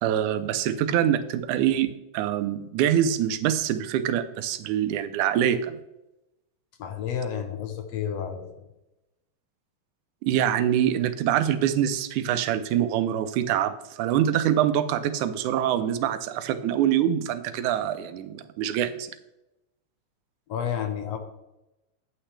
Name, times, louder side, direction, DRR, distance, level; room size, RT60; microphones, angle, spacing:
voice 1, 0.0-5.8 10.2-19.1, right 10 dB, 90° right, 11 dB, 2.2 m, -25 dB
voice 2, 6.8-8.6 20.5-21.2, left 8 dB, 70° left, 6 dB, 1.7 m, -31 dB
9.4 x 8.8 x 3.3 m, 0.93 s
omnidirectional pair, 3.4 m